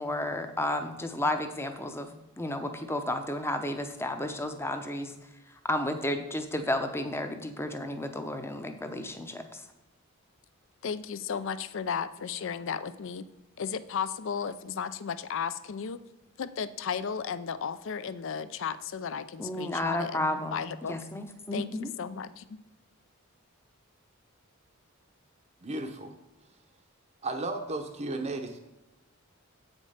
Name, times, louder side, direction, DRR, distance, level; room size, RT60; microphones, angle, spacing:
voice 1, 0.0-2.1 2.4-5.1 5.6-9.6 19.4-20.6 20.9-21.9, left 1 dB, 10° left, 7 dB, 0.7 m, -32 dB
voice 2, 10.8-13.2 13.6-16.0 16.4-21.0 21.5-22.6, left 7 dB, 60° left, 14 dB, 0.4 m, -34 dB
voice 3, 25.6-26.1 27.2-28.6, right 2 dB, 30° right, 3 dB, 0.7 m, -34 dB
8.4 x 5.3 x 5.5 m, 1.0 s
head